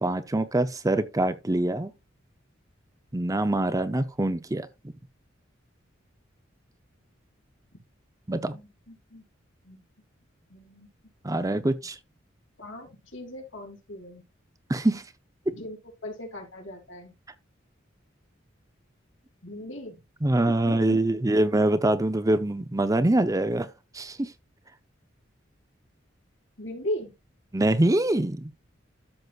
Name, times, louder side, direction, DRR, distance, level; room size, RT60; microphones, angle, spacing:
voice 1, 0.0-1.9 3.1-4.7 8.3-8.6 11.2-12.0 14.7-15.0 15.5-15.6 20.2-23.7 23.9-24.3 27.5-28.5, right 1 dB, 20° right, 0.7 m, -24 dB
voice 2, 8.9-9.2 9.7-9.8 10.5-10.9 12.6-14.2 15.5-15.8 16.0-17.1 19.4-20.0 20.5-21.2 26.6-27.1, left 1 dB, 80° left, 3.5 m, -38 dB
13.0 x 6.2 x 2.4 m
head